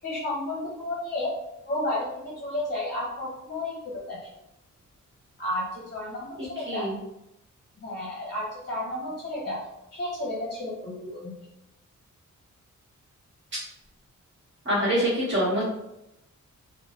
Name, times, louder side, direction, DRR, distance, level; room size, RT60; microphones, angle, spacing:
voice 1, 0.0-1.3 1.7-4.3 5.4-6.9 7.8-11.3, left 1 dB, 35° left, -4 dB, 0.8 m, -32 dB
voice 2, 6.6-7.0 14.6-15.6, equal, 35° right, -9 dB, 1.5 m, -25 dB
3.2 x 2.2 x 2.7 m, 0.85 s
wide cardioid pair, 130°, 31 cm